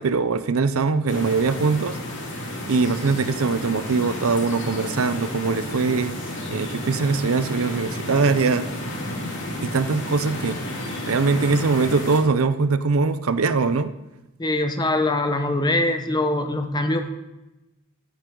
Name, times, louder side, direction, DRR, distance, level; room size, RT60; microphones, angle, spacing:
voice 1, 0.0-8.7 9.6-10.6 11.1-13.9, right 4 dB, 80° right, 13 dB, 0.6 m, -22 dB
sound 1, 1.1-12.2, left 1 dB, 60° left, 3.2 m, -32 dB
voice 2, 14.4-17.0, left 2 dB, 20° left, 6 dB, 0.9 m, -23 dB
13.0 x 10.0 x 3.8 m, 0.98 s
head